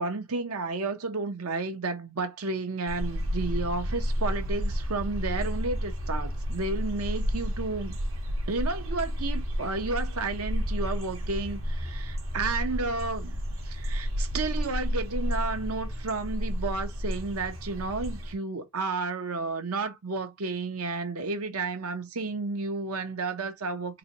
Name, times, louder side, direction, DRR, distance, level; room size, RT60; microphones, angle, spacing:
voice 1, 0.0-8.0 8.5-13.4 13.6-24.0, right 3 dB, 85° right, 0.9 m, -32 dB
sound 1, 2.9-18.3, equal, 65° right, 1.4 m, -31 dB
3.9 x 3.1 x 2.9 m
head